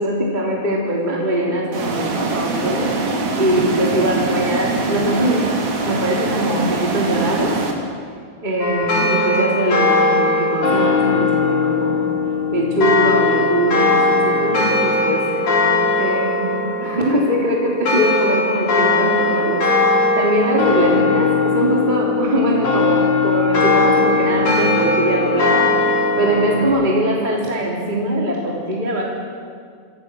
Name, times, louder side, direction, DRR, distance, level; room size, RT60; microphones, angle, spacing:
voice 1, 0.0-3.0 3.4-5.6 5.9-7.6 8.4-12.1 12.5-15.4 16.0-29.0, right 1 dB, 15° right, -2 dB, 3.2 m, -21 dB
sound 1, 1.7-7.7, right 3 dB, 70° right, 4.2 m, -23 dB
sound 2, 8.6-26.7, left 3 dB, 75° left, 5.1 m, -19 dB
28.5 x 25.0 x 6.2 m, 2.2 s
omnidirectional pair, 3.4 m